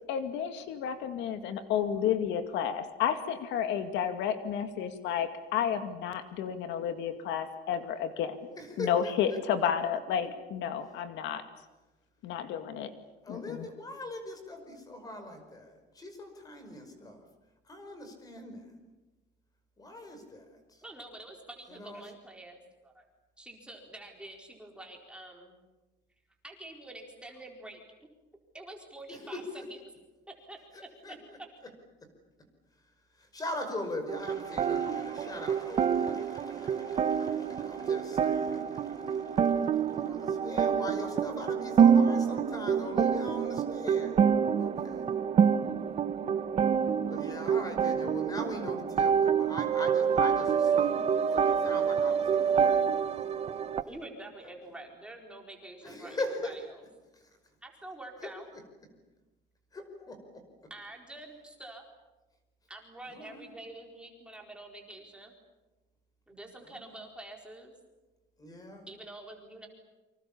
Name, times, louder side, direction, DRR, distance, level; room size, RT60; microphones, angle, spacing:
voice 1, 0.1-8.4 8.8-11.4 12.2-12.9 13.3-13.7, left 8 dB, 75° left, 9 dB, 2.2 m, -31 dB
voice 2, 8.6-9.4 13.2-17.2 17.7-18.7 19.8-20.8 21.7-22.0 29.1-29.6 30.7-31.1 33.2-39.6 39.9-45.1 47.1-52.8 53.9-54.0 55.8-56.5 58.2-58.3 59.7-60.4 63.1-63.5 66.7-66.8 68.4-68.9, left 1 dB, 20° left, 7 dB, 5.3 m, -41 dB
voice 3, 20.8-23.1 23.4-25.6 26.4-27.8 28.5-29.8 30.5-30.6 31.1-31.2 53.8-56.8 57.6-58.5 60.7-61.8 62.7-65.3 66.3-67.7 68.9-69.7, right 2 dB, 5° right, 1 dB, 4.4 m, -47 dB
sound 1, 34.1-53.8, right 7 dB, 35° right, 0.9 m, -27 dB
29.0 x 26.0 x 7.2 m, 1.1 s
cardioid pair, 175°, 19 cm